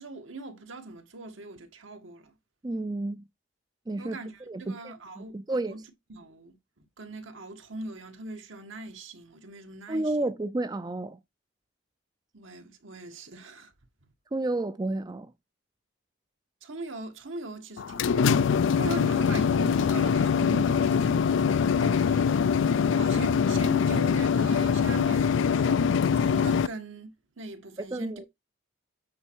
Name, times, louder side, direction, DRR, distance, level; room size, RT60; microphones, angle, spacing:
voice 1, 0.0-2.4 4.0-10.3 12.3-13.7 16.6-25.8 26.1-28.3, right 2 dB, 80° right, 1.6 m, -41 dB
voice 2, 2.6-3.2 3.9-4.2 4.5-4.8 5.2-5.7 9.9-11.2 14.3-15.3 27.9-28.3, right 2 dB, 20° right, 0.4 m, -31 dB
sound 1, 17.8-26.7, left 6 dB, 75° left, 0.4 m, -23 dB
8.5 x 4.2 x 4.6 m
head